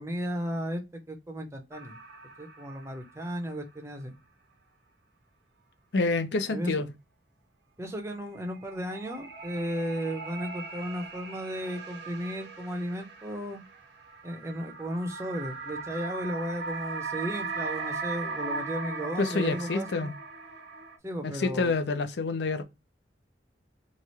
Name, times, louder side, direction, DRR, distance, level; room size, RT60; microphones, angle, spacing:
voice 1, 0.0-2.0 2.4-4.1 6.5-6.7 7.8-13.6 14.2-20.1 21.0-21.7, equal, 15° right, 0.6 m, -35 dB
sound 1, 1.7-3.3 3.6-3.7 8.1-21.0, right 4 dB, 70° right, 0.8 m, -39 dB
voice 2, 5.9-6.9 19.2-20.1 21.2-22.6, left 3 dB, 70° left, 0.6 m, -28 dB
3.1 x 2.4 x 4.1 m
head